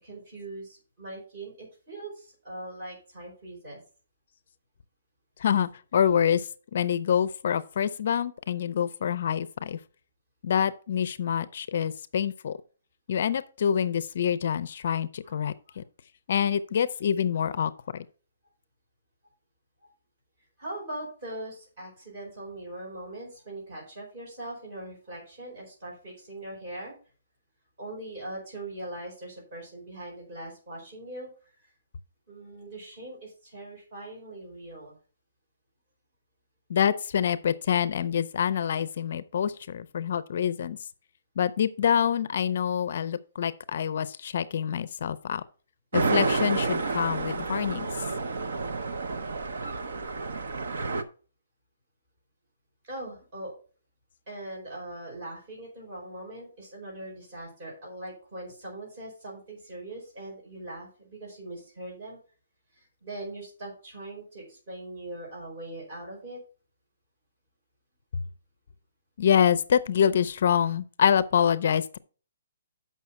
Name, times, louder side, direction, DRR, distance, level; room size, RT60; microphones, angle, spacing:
voice 1, 0.0-3.8 15.2-15.3 19.8-19.9 20.6-26.9 27.8-31.3 31.6-31.7 32.3-34.9 52.8-53.5 54.3-62.2 62.7-66.4, right 1 dB, 30° right, 4.6 m, -41 dB
voice 2, 5.4-9.8 10.4-12.6 13.1-15.8 16.3-18.0 36.7-40.8 41.4-45.4 45.9-47.9 69.2-72.0, left 8 dB, 45° left, 0.5 m, -26 dB
sound 1, 45.9-51.0, right 3 dB, 65° right, 0.9 m, -29 dB
7.4 x 5.6 x 5.8 m
hypercardioid pair, 175°, 0 cm